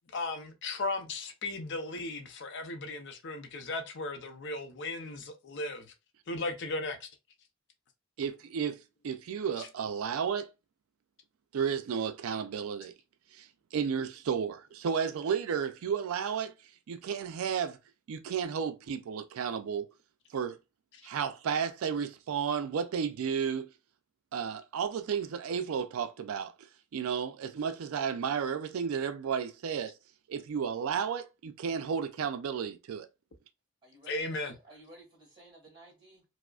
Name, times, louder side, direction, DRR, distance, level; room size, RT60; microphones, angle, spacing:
voice 1, 0.1-5.9 6.3-7.1 9.6-9.7 20.9-21.0 34.1-34.6, left 2 dB, 55° left, 0.5 m, -36 dB
voice 2, 8.2-10.5 11.5-12.9 13.3-16.5 16.9-17.8 18.1-19.9 20.3-20.6 21.0-23.7 24.3-26.5 26.9-29.9 30.3-33.1, right 7 dB, 75° right, 0.4 m, -33 dB
voice 3, 33.8-36.2, right 2 dB, 20° right, 1.8 m, -55 dB
4.7 x 2.0 x 2.3 m
head